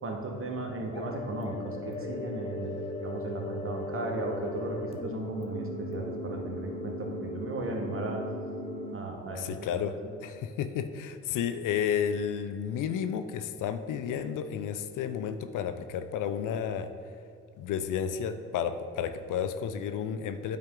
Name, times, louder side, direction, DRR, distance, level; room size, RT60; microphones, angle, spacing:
voice 1, 0.0-8.2 8.9-9.6 10.0-10.1, right 2 dB, 35° right, 1 dB, 1.3 m, -36 dB
sound 1, 0.9-8.9, left 2 dB, 15° left, 0.8 m, -37 dB
voice 2, 9.3-10.0 10.2-16.9 17.6-20.6, left 8 dB, 60° left, 10 dB, 0.5 m, -32 dB
9.2 x 4.4 x 3.7 m, 2.5 s
supercardioid pair, 70°, 36 cm